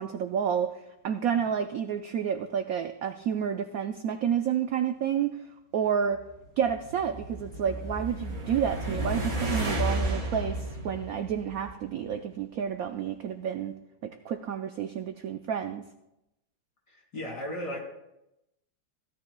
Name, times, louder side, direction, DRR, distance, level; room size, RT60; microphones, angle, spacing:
voice 1, 0.0-5.4 5.7-6.2 6.6-13.7 14.0-15.9, right 8 dB, 80° right, 8 dB, 0.8 m, -30 dB
sound 1, 6.4-11.9, right 1 dB, 35° right, 2.6 m, -32 dB
voice 2, 16.9-17.8, equal, 55° left, -3 dB, 3.7 m, -35 dB
16.5 x 12.5 x 2.3 m, 0.88 s
omnidirectional pair, 2.1 m